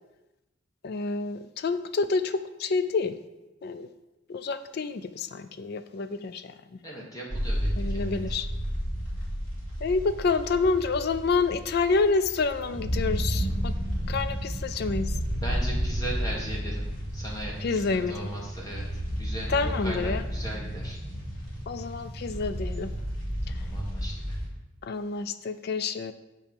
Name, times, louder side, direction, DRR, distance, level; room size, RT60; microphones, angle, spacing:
voice 1, 0.8-3.2 3.6-3.9 4.3-6.8 7.8-8.5 9.8-13.7 14.1-15.2 17.6-18.3 19.5-20.2 21.7-22.9 23.5-23.6 24.8-26.1, left 4 dB, 50° left, 12 dB, 0.3 m, -28 dB
voice 2, 6.8-8.2 15.4-16.8 17.1-21.0 23.4-24.4, right 1 dB, 20° left, -3 dB, 1.4 m, -38 dB
sound 1, 7.3-24.5, equal, 85° left, 2.9 m, -32 dB
8.7 x 4.5 x 5.2 m, 1.0 s
head